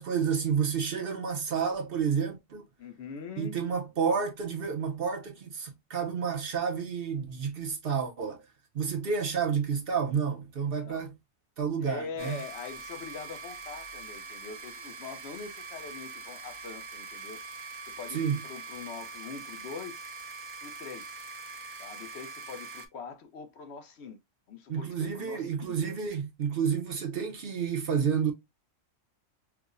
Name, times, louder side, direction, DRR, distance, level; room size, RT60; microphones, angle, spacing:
voice 1, 0.0-2.6 3.4-8.4 8.7-11.1 11.6-12.4 18.1-18.4 24.7-28.3, right 6 dB, 55° right, 0.8 m, -30 dB
voice 2, 2.8-3.6 10.8-11.1 11.8-20.0 20.6-21.2 21.8-24.2 24.5-25.9, left 5 dB, 60° left, 0.9 m, -43 dB
sound 1, 12.2-22.9, right 3 dB, 85° right, 1.1 m, -43 dB
4.6 x 2.1 x 2.5 m
omnidirectional pair, 1.4 m